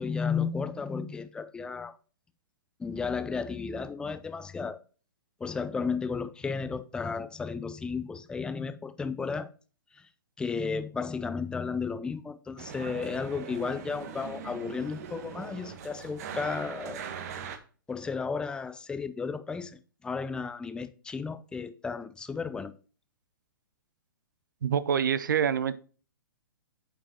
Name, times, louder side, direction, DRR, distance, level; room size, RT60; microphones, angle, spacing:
voice 1, 0.0-1.9 2.8-4.8 5.4-9.5 9.9-10.1 10.4-17.0 17.9-22.7, left 5 dB, 5° left, 0.5 m, -33 dB
sound 1, 12.6-17.6, right 7 dB, 45° right, 1.2 m, -41 dB
voice 2, 24.6-25.7, right 8 dB, 65° right, 0.7 m, -26 dB
8.6 x 5.2 x 2.9 m
figure-of-eight pair, 115°, 11 cm